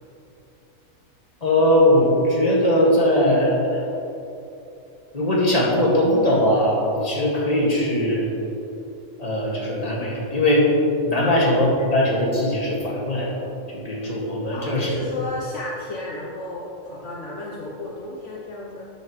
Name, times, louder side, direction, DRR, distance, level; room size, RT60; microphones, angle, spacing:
voice 1, 1.4-3.8 5.1-8.3 9.2-10.7 11.1-13.4 13.7-15.0, left 1 dB, 30° left, -4 dB, 2.1 m, -20 dB
voice 2, 14.5-18.9, left 2 dB, 60° left, -3 dB, 1.3 m, -33 dB
13.0 x 8.9 x 3.2 m, 2.8 s
omnidirectional pair, 1.4 m